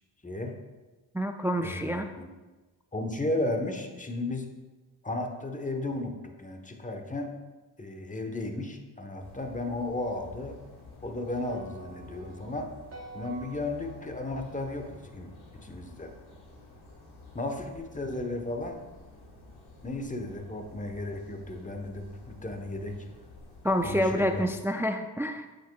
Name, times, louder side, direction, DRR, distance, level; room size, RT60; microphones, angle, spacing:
voice 1, 0.2-0.6 1.6-2.3 2.9-4.5 5.0-7.4 7.8-10.6 11.0-12.7 13.1-16.1 17.3-18.8 19.8-23.1 23.8-24.5, left 2 dB, 15° left, 5 dB, 1.1 m, -34 dB
voice 2, 1.1-2.1 23.6-25.5, equal, 5° right, 7 dB, 0.4 m, -28 dB
sound 1, 9.2-24.4, left 2 dB, 80° left, 1.9 m, -51 dB
sound 2, 11.5-15.8, right 3 dB, 30° right, 1.3 m, -49 dB
7.9 x 6.7 x 2.4 m, 1.2 s
supercardioid pair, 50°, 48 cm